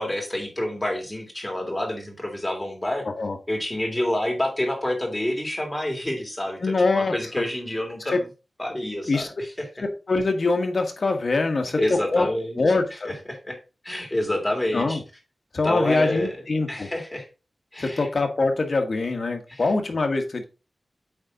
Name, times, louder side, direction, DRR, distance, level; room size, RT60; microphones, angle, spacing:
voice 1, 0.0-3.1 3.5-8.2 8.6-9.5 11.8-12.6 12.9-13.6 13.8-15.0 15.6-16.4 16.7-17.3 17.7-18.1 19.5-19.6, left 1 dB, 15° left, 2 dB, 3.0 m, -28 dB
voice 2, 6.6-7.1 9.1-9.3 9.8-12.3 12.6-13.1 14.7-15.0 15.5-16.9 17.8-20.4, left 3 dB, 60° left, 5 dB, 1.5 m, -24 dB
8.7 x 4.1 x 3.8 m, 0.30 s
wide cardioid pair, 75°, 0 cm